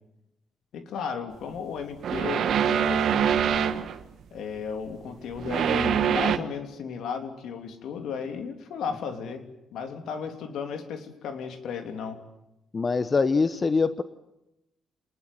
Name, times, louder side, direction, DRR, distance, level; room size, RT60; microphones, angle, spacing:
voice 1, 0.7-3.3 4.3-12.2, left 6 dB, 75° left, 6 dB, 3.1 m, -34 dB
sound 1, 2.0-4.0 5.3-6.4, right 8 dB, 70° right, 1.5 m, -24 dB
voice 2, 12.7-14.0, left 4 dB, 35° left, 12 dB, 1.0 m, -23 dB
27.0 x 20.0 x 9.2 m, 0.91 s
cardioid pair, 90°, 0 cm